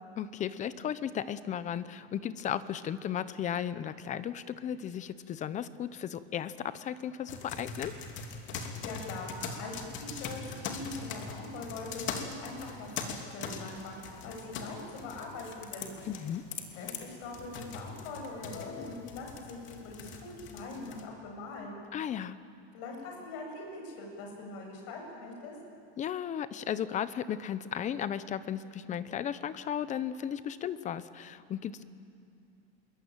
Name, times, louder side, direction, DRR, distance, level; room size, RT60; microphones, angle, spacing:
voice 1, 0.2-8.0 16.0-16.4 21.9-22.4 26.0-31.8, left 9 dB, 25° left, 14 dB, 0.8 m, -35 dB
sound 1, 7.3-21.0, left 5 dB, 40° left, 2.8 m, -42 dB
voice 2, 8.6-15.9 16.7-21.8 22.7-25.5, left 3 dB, 55° left, 1 dB, 7.8 m, -42 dB
27.0 x 22.5 x 9.1 m, 2.5 s
supercardioid pair, 160°, 30 cm